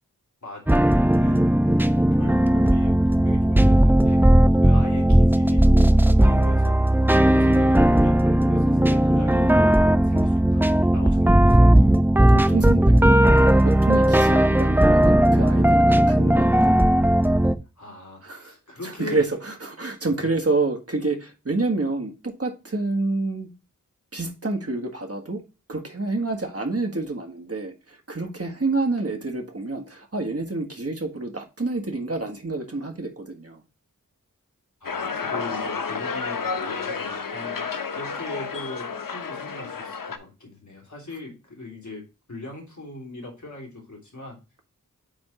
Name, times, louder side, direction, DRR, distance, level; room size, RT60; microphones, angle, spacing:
sound 1, 0.7-17.5, right 1 dB, 5° right, 0.5 m, -17 dB
voice 1, 1.1-6.9 7.2-10.7 10.9-11.6 17.8-19.2 34.8-37.7 37.9-44.4, left 2 dB, 60° left, -1 dB, 3.0 m, -40 dB
voice 2, 12.3-16.8 18.2-23.5 24.1-25.4 25.7-33.6, right 3 dB, 45° right, 3 dB, 1.6 m, -28 dB
sound 2, 34.8-40.2, left 5 dB, 85° left, 0.8 m, -31 dB
8.6 x 3.6 x 4.3 m, 0.29 s
wide cardioid pair, 50°, 32 cm